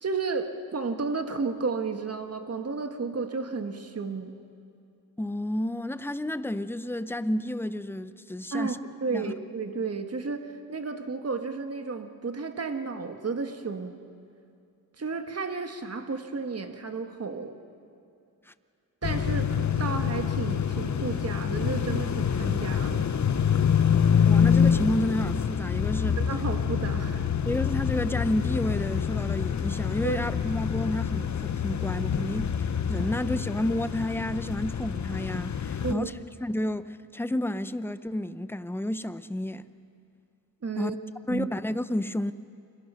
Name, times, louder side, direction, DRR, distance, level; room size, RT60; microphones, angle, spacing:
voice 1, 0.0-4.4 8.5-8.7 9.0-14.0 15.0-17.5 19.0-19.5 19.8-23.1 26.2-27.3 30.0-30.2 35.8-36.1 40.6-40.9 41.3-41.5, right 4 dB, 45° right, 1.7 m, -32 dB
voice 2, 5.2-8.8 9.1-9.4 18.5-18.6 24.2-26.2 27.5-32.5 32.9-36.1 36.4-39.7 40.8-40.9 41.3-42.3, left 1 dB, 5° left, 0.6 m, -30 dB
sound 1, 19.0-35.9, left 7 dB, 50° left, 1.0 m, -26 dB
29.5 x 23.0 x 5.8 m
wide cardioid pair, 95°, 36 cm